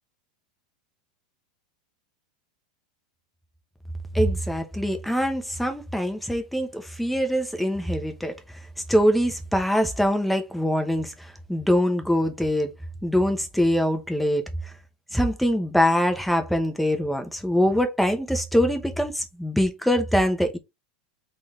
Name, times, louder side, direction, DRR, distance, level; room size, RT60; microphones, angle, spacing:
voice 1, 4.1-8.4 8.9-12.7 13.0-14.7 15.1-20.6, equal, ahead, 0.8 m, -23 dB
3.9 x 3.9 x 3.1 m
supercardioid pair, 150°, 4 cm